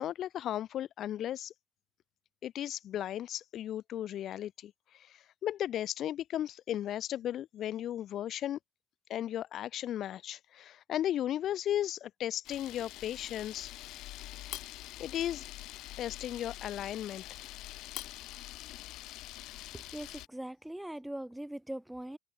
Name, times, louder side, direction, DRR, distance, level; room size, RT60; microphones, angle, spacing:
voice 1, 0.0-1.5 2.4-8.6 9.1-13.7 15.0-15.4 16.0-17.4, left 11 dB, 50° left, 1.2 m, -35 dB
Camera, 12.4-20.3, left 16 dB, 65° left, 6.6 m, -45 dB
voice 2, 19.7-22.2, right 1 dB, 5° right, 1.0 m, -41 dB
cardioid pair, 140°, 0 cm